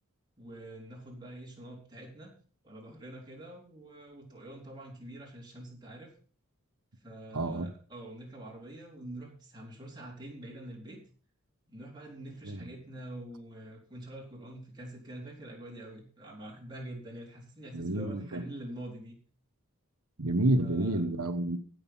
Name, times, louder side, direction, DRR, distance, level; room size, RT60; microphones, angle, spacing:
voice 1, 0.4-2.3 2.6-6.1 7.0-11.0 11.7-19.2 20.6-21.0, right 1 dB, 20° right, -2 dB, 3.8 m, -45 dB
voice 2, 7.3-7.7 12.4-12.7 17.7-18.4 20.2-21.6, right 1 dB, 85° right, 7 dB, 1.3 m, -29 dB
16.0 x 6.6 x 5.6 m, 0.41 s
head